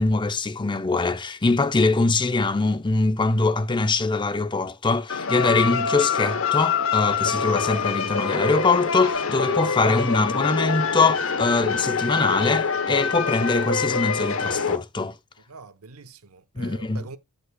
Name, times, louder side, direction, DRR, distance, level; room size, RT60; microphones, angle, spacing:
voice 1, 0.0-15.1 16.6-17.0, left 3 dB, 20° left, 0.6 m, -23 dB
sound 1, 5.1-14.8, left 5 dB, 65° left, 0.9 m, -25 dB
voice 2, 9.7-10.0 15.5-17.2, right 3 dB, 85° right, 0.9 m, -44 dB
14.5 x 5.2 x 2.2 m
head